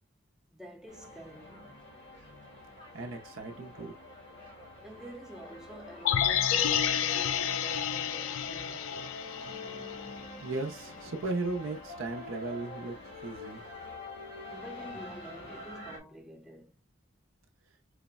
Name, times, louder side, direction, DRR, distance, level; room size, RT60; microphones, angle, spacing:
voice 1, 0.5-1.8 4.8-9.7 14.5-16.8, equal, 5° right, 0.5 m, -49 dB
sound 1, 0.9-16.0, left 2 dB, 60° left, 1.5 m, -46 dB
voice 2, 2.9-3.9 10.4-13.0 13.2-13.6, right 2 dB, 85° right, 0.6 m, -36 dB
sound 2, 6.0-10.2 10.6-10.7, left 9 dB, 85° left, 0.3 m, -30 dB
4.8 x 2.0 x 2.3 m
head